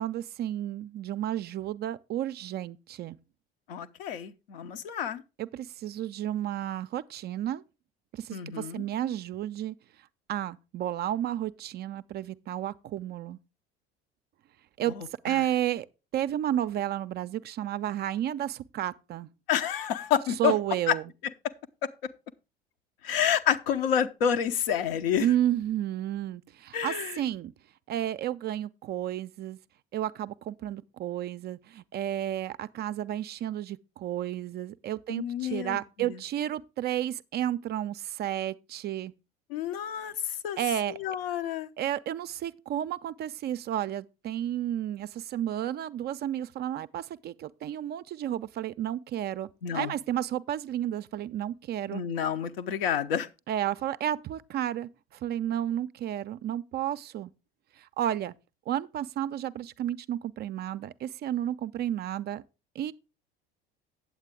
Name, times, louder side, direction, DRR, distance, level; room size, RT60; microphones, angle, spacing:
voice 1, 0.0-3.2 5.4-7.6 8.1-9.7 10.3-13.4 14.8-14.9 15.2-15.9 16.1-19.3 20.4-21.1 25.2-27.5 27.9-29.6 29.9-39.1 40.6-41.0 41.8-49.5 49.7-52.0 53.5-57.3 57.8-58.3 58.7-62.4 62.8-62.9, right 11 dB, 35° right, 0.4 m, -32 dB
voice 2, 3.7-5.2 8.3-8.8 14.9-15.4 19.5-20.5 20.9-21.0 23.0-25.3 26.7-27.2 35.1-36.2 39.5-40.1 40.4-40.6 40.9-41.7 49.6-49.9 51.9-53.3, left 9 dB, 65° left, 0.8 m, -29 dB
8.5 x 8.0 x 3.6 m
figure-of-eight pair, 70°, 31 cm